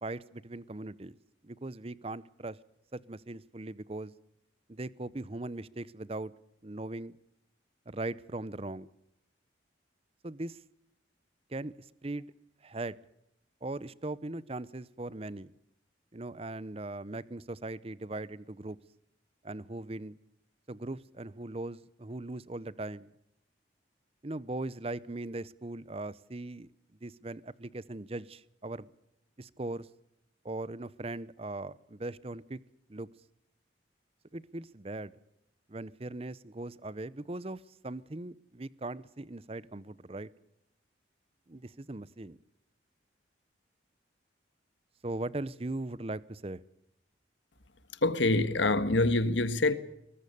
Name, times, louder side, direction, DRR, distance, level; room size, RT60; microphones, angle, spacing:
voice 1, 0.0-1.1 1.4-2.6 2.9-4.1 4.7-6.3 6.6-7.1 7.9-8.9 10.2-10.6 11.5-12.3 12.6-13.0 13.6-15.5 16.1-18.8 19.4-20.2 20.7-23.1 24.2-26.7 27.0-28.9 29.4-29.9 30.4-32.6 32.9-33.1 34.3-35.1 35.7-40.3 41.5-42.4 45.0-46.6, right 2 dB, 30° right, 0.7 m, -39 dB
voice 2, 48.0-49.7, left 2 dB, 80° left, 1.6 m, -25 dB
23.0 x 20.0 x 6.9 m
head